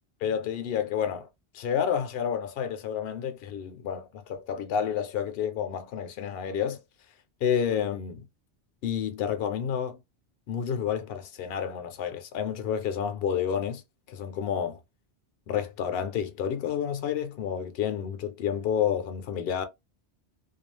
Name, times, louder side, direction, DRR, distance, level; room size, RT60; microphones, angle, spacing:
voice 1, 0.2-1.3 1.5-6.8 7.4-8.2 8.8-10.0 10.5-13.8 14.1-14.8 15.5-19.6, left 8 dB, 65° left, 0.8 m, -30 dB
2.4 x 2.3 x 3.1 m
omnidirectional pair, 1.1 m